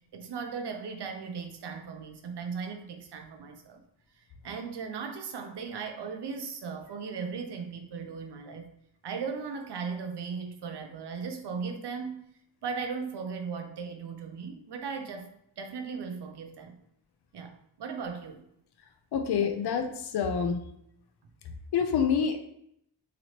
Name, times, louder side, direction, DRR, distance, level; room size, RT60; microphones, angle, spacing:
voice 1, 0.1-3.8 4.2-8.7 9.0-12.3 12.6-16.8 17.3-18.4, right 5 dB, 70° right, 5 dB, 0.6 m, -37 dB
voice 2, 19.1-20.6 21.7-22.4, left 7 dB, 65° left, 6 dB, 0.5 m, -27 dB
2.9 x 2.9 x 2.8 m, 0.73 s
wide cardioid pair, 95°, 42 cm